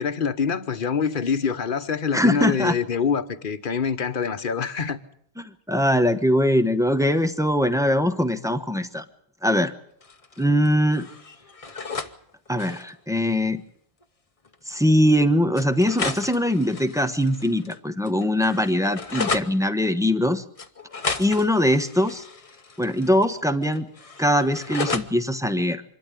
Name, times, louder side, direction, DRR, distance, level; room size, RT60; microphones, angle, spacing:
voice 1, 0.0-5.0, left 6 dB, 55° left, 1.2 m, -25 dB
voice 2, 2.1-2.7 5.4-9.0 9.4-9.7 10.4-11.1 12.5-13.6 14.7-20.4 21.2-22.2 22.8-23.9 24.2-25.8, equal, 5° right, 1.0 m, -22 dB
sound 1, 10.0-10.7 10.9-12.1 12.5-12.9 14.0-14.1 14.5-14.6 15.6-17.8 18.1-19.5 20.6-23.4 23.6-25.1, left 4 dB, 35° left, 0.9 m, -33 dB
25.5 x 12.5 x 9.9 m
omnidirectional pair, 1.1 m